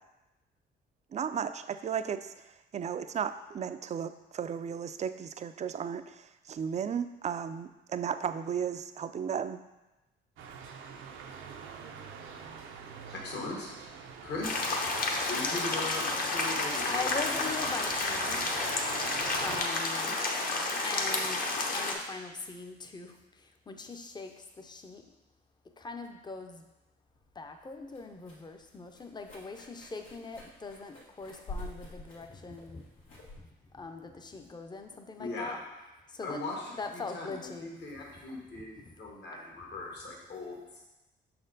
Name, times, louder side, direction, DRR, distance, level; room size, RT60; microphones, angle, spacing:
voice 1, 1.1-2.3 2.7-9.6, right 7 dB, 35° right, 11 dB, 0.4 m, -34 dB
sound 1, 10.4-19.7, right 6 dB, 85° right, 0.6 m, -44 dB
voice 2, 13.0-13.7 14.2-14.7 15.3-17.7 20.0-20.4 34.3-34.4 35.2-35.6 36.2-40.9, left 2 dB, 60° left, -1 dB, 1.6 m, -40 dB
sound 2, 14.4-21.9, left 3 dB, 45° left, 0.9 m, -31 dB
voice 3, 16.8-18.5 19.4-20.2 20.8-25.0 25.8-26.6 27.4-32.9 33.4-35.6 36.1-36.4 36.8-37.7 38.3-38.4 39.3-39.4, left 3 dB, 20° left, 5 dB, 0.6 m, -41 dB
sound 3, 27.1-34.9, left 2 dB, 85° left, 1.6 m, -48 dB
6.1 x 4.3 x 3.9 m, 1.0 s
cardioid pair, 90°, 20 cm